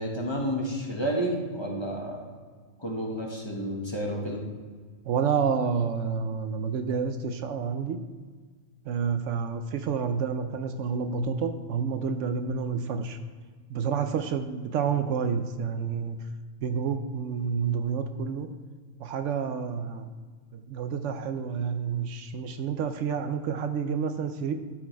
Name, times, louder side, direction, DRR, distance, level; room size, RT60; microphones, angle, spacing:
voice 1, 0.0-2.2 2.8-4.4, equal, 20° left, -2 dB, 1.4 m, -30 dB
voice 2, 5.0-8.0 8.9-13.2 13.7-16.2 16.6-18.5 19.0-20.1 20.5-24.5, right 6 dB, 75° right, 8 dB, 0.9 m, -29 dB
12.0 x 4.7 x 4.6 m, 1.5 s
omnidirectional pair, 1.3 m